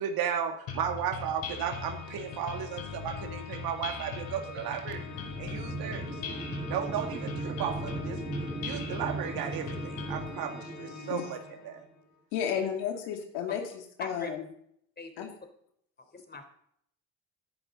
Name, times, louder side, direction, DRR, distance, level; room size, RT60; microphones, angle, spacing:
voice 1, 0.0-5.0 5.4-6.1 6.7-8.2 8.6-11.8, right 8 dB, 70° right, 5 dB, 2.2 m, -34 dB
sound 1, 0.7-10.3, left 6 dB, 65° left, 5.1 m, -40 dB
Organ, 1.5-12.1, left 7 dB, 45° left, 2.2 m, -47 dB
sound 2, 4.3-11.9, right 3 dB, 10° right, 2.2 m, -39 dB
voice 2, 12.3-14.4 15.2-15.3, left 8 dB, 80° left, 3 dB, 2.5 m, -33 dB
voice 3, 14.0-14.3 15.0-15.2 16.1-16.5, left 3 dB, 25° left, 6 dB, 3.6 m, -41 dB
16.5 x 11.0 x 4.0 m, 0.70 s
hypercardioid pair, 60°, 38 cm